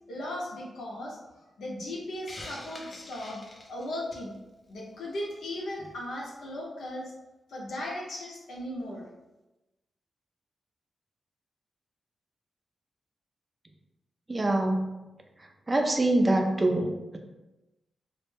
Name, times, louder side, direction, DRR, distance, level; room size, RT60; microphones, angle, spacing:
voice 1, 0.1-1.2 1.6-3.4 3.7-4.4 4.7-7.1 7.5-9.1, left 1 dB, 80° left, -3 dB, 0.6 m, -37 dB
Hiss, 2.3-4.3, left 1 dB, 40° left, 0.5 m, -44 dB
voice 2, 14.3-14.9 15.7-17.2, right 1 dB, 30° right, 3 dB, 0.4 m, -25 dB
2.1 x 2.0 x 3.1 m, 1.0 s
cardioid pair, 70°, 0 cm